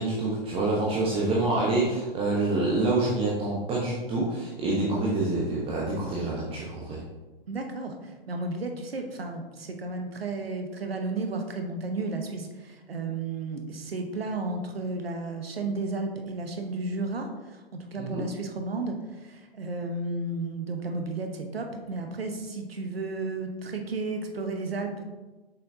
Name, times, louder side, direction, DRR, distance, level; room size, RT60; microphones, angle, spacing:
voice 1, 0.0-7.0 18.0-18.2, right 2 dB, 20° right, -5 dB, 1.0 m, -27 dB
voice 2, 7.5-25.0, right 3 dB, 75° right, 4 dB, 1.0 m, -33 dB
6.5 x 5.5 x 2.7 m, 1.2 s
figure-of-eight pair, 115°, 30 cm